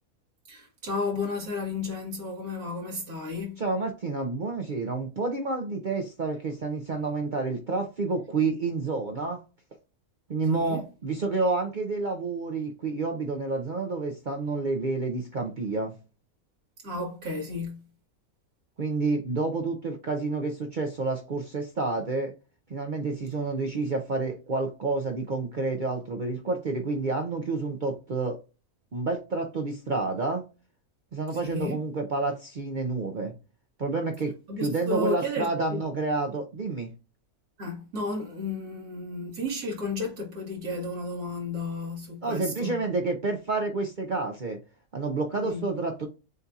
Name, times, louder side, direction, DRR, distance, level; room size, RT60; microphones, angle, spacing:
voice 1, 0.5-3.6 10.5-10.8 16.8-17.9 31.3-31.8 34.5-35.8 37.6-42.8 45.4-45.7, left 2 dB, 85° right, 2.2 m, -33 dB
voice 2, 3.6-9.4 10.3-16.0 18.8-22.3 22.7-28.4 28.9-30.5 31.1-33.3 33.8-36.9 42.2-44.6 44.9-46.1, right 3 dB, 50° right, 0.5 m, -29 dB
7.5 x 2.8 x 2.3 m
omnidirectional pair, 1.6 m